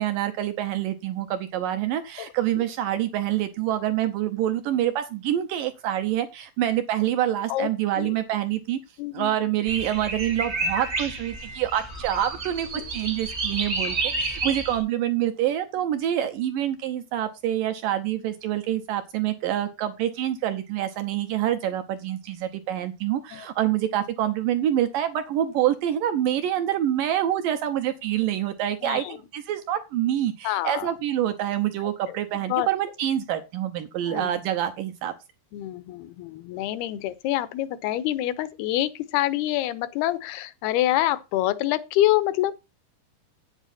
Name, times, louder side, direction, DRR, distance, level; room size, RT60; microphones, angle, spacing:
voice 1, 0.0-8.8 9.1-35.1, right 11 dB, 75° right, 2.1 m, -26 dB
voice 2, 9.0-9.3 12.8-12.9 14.4-14.6 23.3-23.5 28.8-29.2 30.4-30.9 32.1-32.2 32.5-32.7 34.1-34.4 35.5-42.5, left 14 dB, 80° left, 2.6 m, -26 dB
sound 1, 9.7-14.8, right 3 dB, 45° right, 0.8 m, -30 dB
9.2 x 8.3 x 4.1 m
omnidirectional pair, 4.9 m